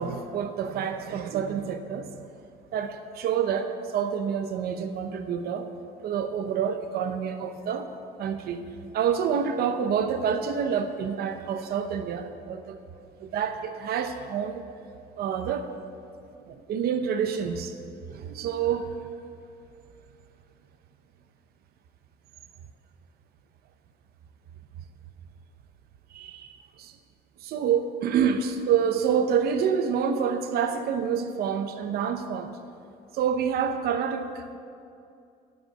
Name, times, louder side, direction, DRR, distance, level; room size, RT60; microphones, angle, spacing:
voice 1, 0.0-2.2 2.7-5.7 6.0-7.9 8.2-8.6 8.9-12.8 13.2-14.6 15.2-15.7 16.5-17.7 18.1-18.9 26.1-27.0 27.4-32.6 33.1-34.6, right 7 dB, 65° right, 8 dB, 0.8 m, -28 dB
12.0 x 5.5 x 9.1 m, 2.5 s
cardioid pair, 110°, 17 cm